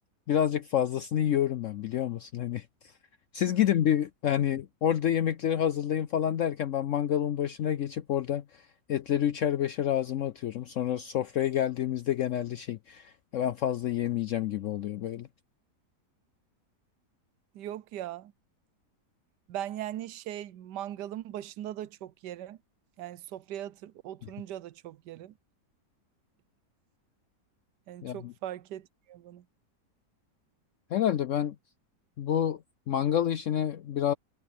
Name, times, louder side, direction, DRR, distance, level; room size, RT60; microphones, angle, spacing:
voice 1, 0.3-2.6 3.3-8.6 8.9-15.3 28.0-28.3 30.9-31.6 32.2-32.6 32.9-34.1, left 10 dB, 70° left, 0.7 m, -28 dB
voice 2, 17.5-18.3 19.5-22.6 23.0-25.3 27.9-29.4, right 12 dB, 80° right, 1.2 m, -39 dB
omnidirectional pair, 1.8 m